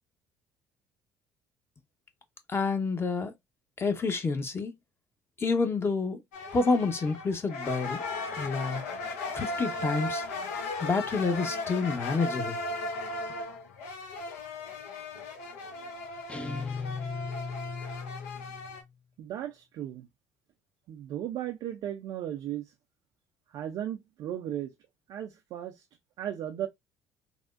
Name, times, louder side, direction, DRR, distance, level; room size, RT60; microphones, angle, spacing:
voice 1, 2.5-3.3 3.8-4.7 5.4-6.2 6.5-8.0 8.4-8.8 9.3-10.2 10.8-12.6, left 4 dB, 30° left, 0.8 m, -28 dB
sound 1, 6.3-18.8, left 2 dB, 80° left, 0.6 m, -37 dB
sound 2, 16.3-18.9, left 5 dB, 15° left, 0.4 m, -37 dB
voice 2, 19.2-20.1 20.9-22.7 23.5-24.7 25.1-25.8 26.2-26.7, right 11 dB, 60° right, 0.4 m, -36 dB
3.4 x 2.1 x 2.4 m
hypercardioid pair, 60°, 8 cm